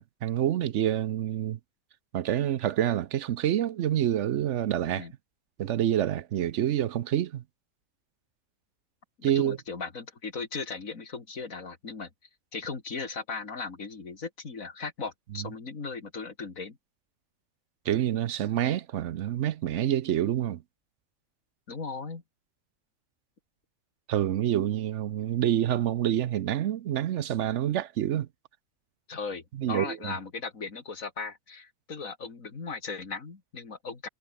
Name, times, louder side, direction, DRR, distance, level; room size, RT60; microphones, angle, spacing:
voice 1, 0.0-1.6 2.1-5.1 5.6-7.4 9.2-9.6 15.4-15.5 17.9-20.6 24.1-28.3 29.6-30.1, right 11 dB, 65° right, 0.9 m, -27 dB
voice 2, 9.2-12.1 12.5-16.8 21.7-22.2 29.1-34.1, left 4 dB, 65° left, 3.0 m, -37 dB
omnidirectional pair, 1.5 m